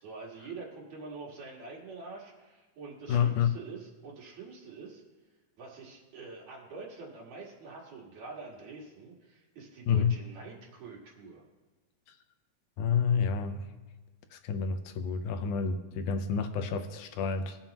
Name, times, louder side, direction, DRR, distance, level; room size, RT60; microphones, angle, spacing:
voice 1, 0.0-5.0 5.6-11.4, right 4 dB, 65° right, -2 dB, 3.1 m, -46 dB
voice 2, 3.1-3.6 9.9-10.2 12.8-13.6 14.3-17.6, left 6 dB, 90° left, 7 dB, 2.3 m, -29 dB
21.5 x 7.4 x 2.9 m, 1.2 s
omnidirectional pair, 3.5 m